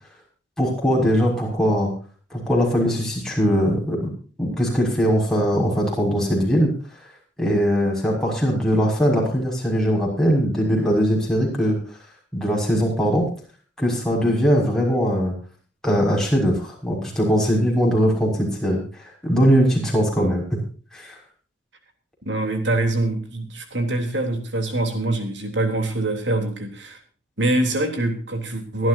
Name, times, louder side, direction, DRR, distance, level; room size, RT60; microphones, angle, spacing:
voice 1, 0.6-1.9 2.3-4.1 4.4-6.7 7.4-11.8 12.3-13.3 13.8-15.3 15.8-20.4 20.9-21.2, equal, 5° left, -3 dB, 6.2 m, -20 dB
voice 2, 22.3-27.0 27.4-28.9, right 2 dB, 65° right, 5 dB, 3.5 m, -24 dB
24.5 x 12.0 x 2.8 m, 0.39 s
head